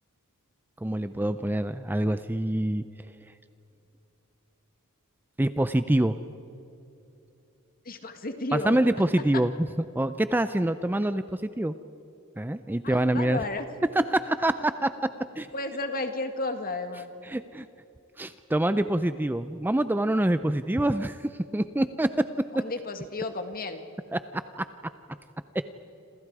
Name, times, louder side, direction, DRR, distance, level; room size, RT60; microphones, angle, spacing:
voice 1, 0.8-2.8 5.4-6.2 8.5-9.7 9.9-11.7 12.4-13.4 13.9-14.9 15.4-15.5 17.2-17.7 18.2-22.1 24.1-24.2 24.6-24.7, right 1 dB, 10° right, 11 dB, 0.5 m, -25 dB
voice 2, 7.9-8.8 12.8-13.7 15.5-17.1 22.5-23.8, left 2 dB, 40° left, 7 dB, 1.9 m, -33 dB
27.5 x 27.5 x 4.9 m, 2.8 s
head